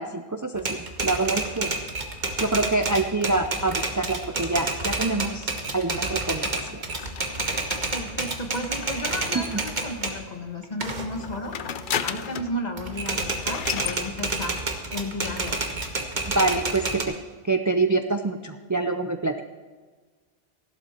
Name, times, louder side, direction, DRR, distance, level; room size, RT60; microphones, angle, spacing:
voice 1, 0.0-1.7 2.4-6.5 6.7-6.8 9.5-9.6 16.3-17.0 17.4-19.3, right 3 dB, 25° right, 6 dB, 0.4 m, -26 dB
Typewriter, 0.6-10.2 10.6-12.4 12.8-17.0, right 3 dB, 45° right, 1.4 m, -29 dB
sound 1, 6.4-10.1 11.1-12.6 12.9-13.0 13.2-14.0, left 8 dB, 60° left, 0.7 m, -34 dB
voice 2, 7.9-11.6 12.0-14.6 14.9-15.7, left 1 dB, 45° left, 4 dB, 1.4 m, -33 dB
15.0 x 12.0 x 4.4 m, 1.4 s
omnidirectional pair, 1.0 m